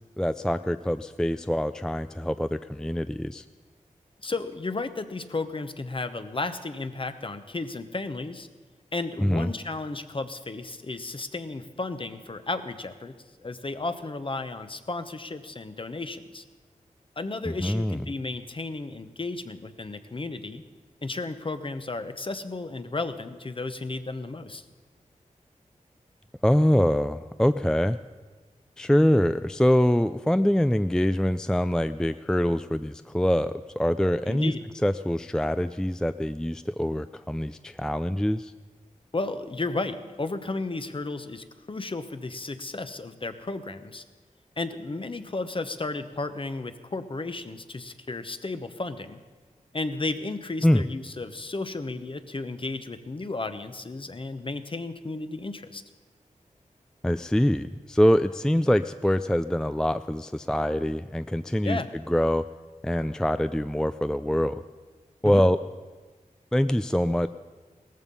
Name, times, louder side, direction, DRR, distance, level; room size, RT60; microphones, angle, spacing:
voice 1, 0.2-3.4 9.2-9.5 17.5-18.0 26.4-28.0 28.8-34.5 34.8-38.5 50.6-50.8 57.0-61.8 62.1-62.4 62.8-64.6 65.2-65.6 66.5-67.3, equal, 5° left, 11 dB, 0.4 m, -24 dB
voice 2, 4.2-8.5 8.9-13.1 13.4-16.4 17.2-20.6 21.0-24.6 34.3-34.6 39.1-44.0 44.6-49.2 49.7-55.8 61.6-61.9 65.2-65.5, left 3 dB, 40° left, 10 dB, 1.0 m, -33 dB
17.5 x 14.5 x 5.5 m, 1.3 s
wide cardioid pair, 75°, 14 cm